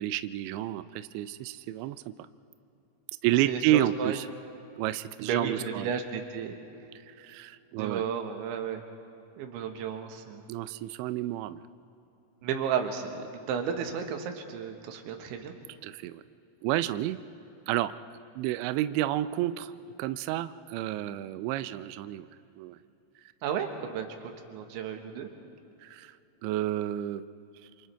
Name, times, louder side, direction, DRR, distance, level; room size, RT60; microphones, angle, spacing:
voice 1, 0.0-2.3 3.2-4.3 4.8-5.9 7.1-8.0 10.5-11.6 15.8-16.2 16.6-17.2 17.7-17.9 18.4-22.3 22.5-22.8 25.8-26.2 26.4-27.2, right 13 dB, 90° right, 12 dB, 2.5 m, -30 dB
voice 2, 3.5-4.2 5.2-6.6 7.8-8.8 9.4-10.4 12.4-15.5 23.4-25.3, right 7 dB, 75° right, 5 dB, 3.5 m, -33 dB
28.0 x 27.5 x 3.4 m, 3.0 s
omnidirectional pair, 5.8 m